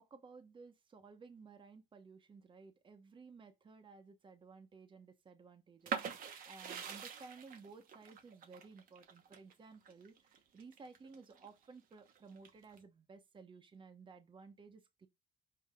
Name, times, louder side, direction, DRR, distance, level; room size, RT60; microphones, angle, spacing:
voice 1, 0.0-15.1, right 4 dB, 30° right, 1.0 m, -56 dB
sound 1, 5.9-11.5 11.9-12.8, right 6 dB, 55° right, 1.1 m, -44 dB
5.7 x 4.6 x 3.6 m
cardioid pair, 110°, 17 cm